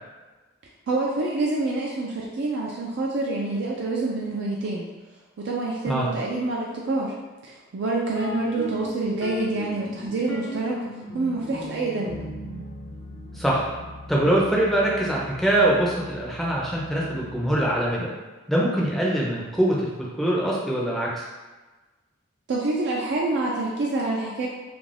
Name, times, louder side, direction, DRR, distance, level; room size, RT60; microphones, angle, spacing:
voice 1, 0.9-4.8 5.4-7.1 7.4-10.8 11.1-12.2 22.5-24.5, right 2 dB, 60° right, -3 dB, 0.4 m, -27 dB
sound 1, 8.2-17.9, left 1 dB, 75° left, 0.6 m, -39 dB
voice 2, 13.3-13.7 14.1-18.1 18.5-19.9 20.2-21.2, right 1 dB, ahead, -5 dB, 0.4 m, -23 dB
2.4 x 2.2 x 3.2 m, 1.2 s
head